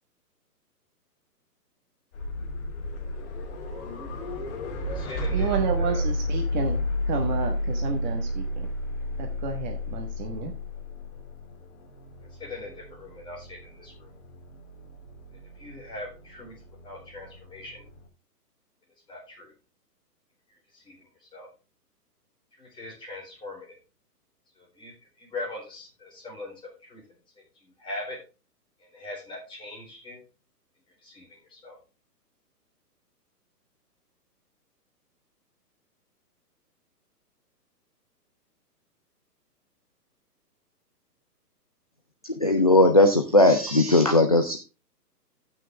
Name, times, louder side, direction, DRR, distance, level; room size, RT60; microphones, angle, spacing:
sound 1, 2.1-18.0, left 1 dB, 45° left, 2.5 m, -32 dB
voice 1, 4.8-6.0 12.3-14.1 15.5-16.5 16.8-17.8 19.1-19.5 20.5-21.5 22.6-23.8 24.6-27.0 27.4-28.2 28.8-30.2 31.0-31.8, left 2 dB, 10° left, -2 dB, 3.9 m, -41 dB
voice 2, 5.3-8.7 9.2-10.5, right 6 dB, 30° right, 3 dB, 1.3 m, -31 dB
voice 3, 42.4-44.6, left 2 dB, 25° left, 6 dB, 0.4 m, -18 dB
14.0 x 6.0 x 3.4 m, 0.30 s
hypercardioid pair, 145°, 48 cm